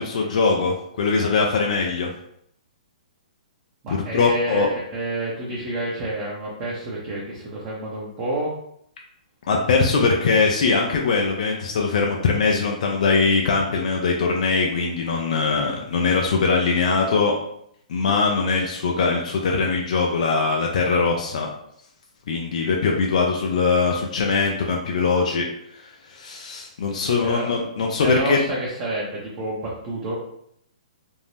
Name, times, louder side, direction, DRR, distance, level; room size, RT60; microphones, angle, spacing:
voice 1, 0.0-2.1 3.9-4.7 9.5-17.3 17.9-21.5 22.3-25.5 25.8-28.4, left 4 dB, 60° left, 0 dB, 0.4 m, -21 dB
voice 2, 3.8-8.5 27.2-27.6 28.0-30.1, right 2 dB, 30° right, -6 dB, 0.7 m, -29 dB
2.6 x 2.1 x 3.2 m, 0.71 s
hypercardioid pair, 150°, 4 cm